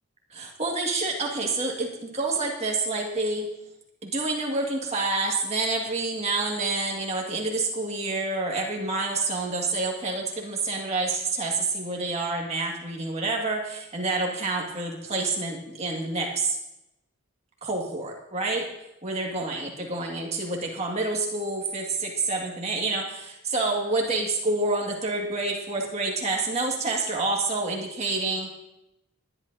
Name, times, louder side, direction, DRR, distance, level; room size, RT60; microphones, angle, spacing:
voice 1, 0.3-3.5 4.0-16.6 17.6-18.7 19.0-28.5, right 3 dB, 30° right, -1 dB, 2.0 m, -28 dB
19.5 x 11.5 x 2.8 m, 0.91 s
head